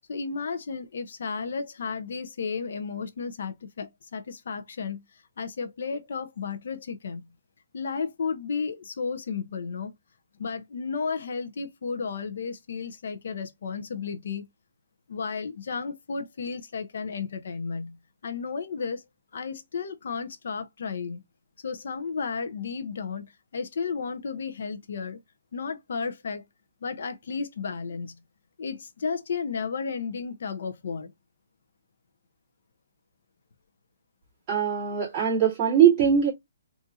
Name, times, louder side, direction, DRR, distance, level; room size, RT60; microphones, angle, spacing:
voice 1, 0.1-7.3 7.7-9.9 10.4-14.5 15.1-19.0 19.3-21.2 21.6-25.2 25.5-26.4 26.8-28.2 28.6-31.1, left 5 dB, 60° left, 0.6 m, -33 dB
voice 2, 34.5-36.3, right 8 dB, 20° right, 2.2 m, -21 dB
3.9 x 2.5 x 2.4 m
hypercardioid pair, 170°, 0 cm